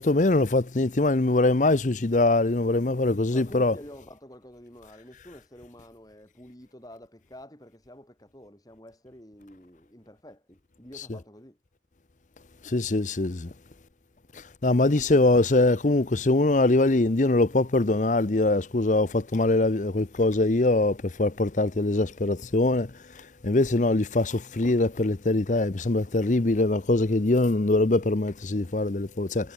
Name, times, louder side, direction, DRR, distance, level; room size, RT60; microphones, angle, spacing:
voice 1, 0.0-3.8 12.6-13.5 14.3-29.5, left 2 dB, 45° left, 0.8 m, -23 dB
voice 2, 3.3-11.6 14.7-15.1, equal, 20° left, 4.5 m, -48 dB
head